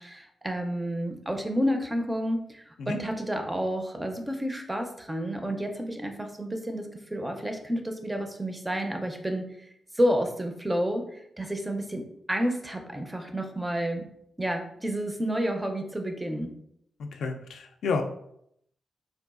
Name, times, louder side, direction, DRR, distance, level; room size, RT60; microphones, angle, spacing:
voice 1, 0.0-9.7 9.9-14.1 14.4-16.5, equal, 15° right, 5 dB, 0.4 m, -30 dB
voice 2, 17.0-18.0, left 4 dB, 85° left, 5 dB, 0.3 m, -30 dB
3.8 x 2.3 x 2.3 m, 0.73 s
cardioid pair, 100°, 0 cm